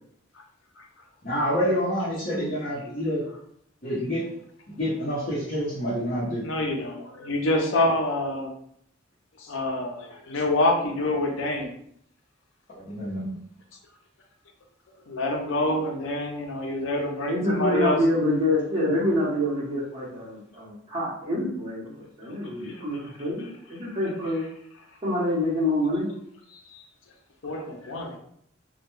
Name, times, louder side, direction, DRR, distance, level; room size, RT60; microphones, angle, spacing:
voice 1, 1.2-3.2 3.8-4.2 4.7-6.4 12.8-13.4, equal, 40° left, -11 dB, 0.7 m, -27 dB
voice 2, 6.4-8.5 9.4-11.7 15.1-18.0 22.6-22.8 26.7-26.8 27.4-28.2, left 2 dB, 80° left, 2 dB, 0.6 m, -26 dB
voice 3, 17.3-24.4 25.0-26.1, left 1 dB, 25° right, -7 dB, 0.8 m, -26 dB
2.2 x 2.2 x 3.0 m, 0.69 s
head